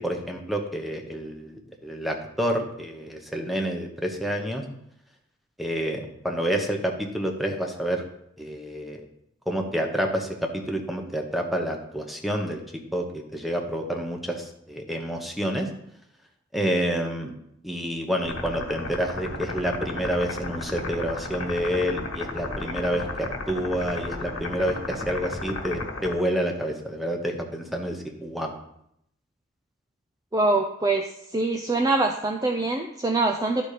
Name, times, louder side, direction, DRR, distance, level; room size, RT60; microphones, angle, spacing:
voice 1, 0.0-4.6 5.6-8.0 8.4-9.0 9.5-12.6 12.9-15.7 16.5-17.3 17.6-28.6, equal, ahead, 2 dB, 1.0 m, -28 dB
sound 1, 18.2-26.1, left 2 dB, 80° left, 1.5 m, -34 dB
voice 2, 30.3-31.0 31.3-33.6, right 2 dB, 20° right, 3 dB, 0.5 m, -24 dB
12.0 x 4.1 x 5.0 m, 0.76 s
head